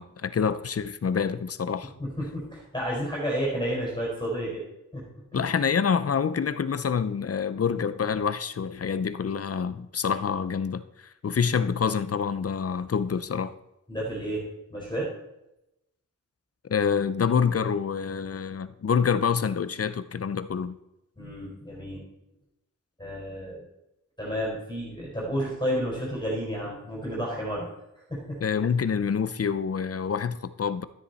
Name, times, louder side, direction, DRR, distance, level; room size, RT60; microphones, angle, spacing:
voice 1, 0.0-1.9 5.3-13.5 16.7-20.7 28.4-30.8, left 6 dB, 50° left, 14 dB, 0.7 m, -27 dB
voice 2, 2.0-4.6 4.9-5.0 5.3-5.4 13.9-15.1 21.2-22.0 23.0-23.6 24.2-27.6 28.1-28.4, equal, 15° left, -5 dB, 4.9 m, -31 dB
13.0 x 9.9 x 4.2 m, 0.90 s
wide cardioid pair, 95°, 31 cm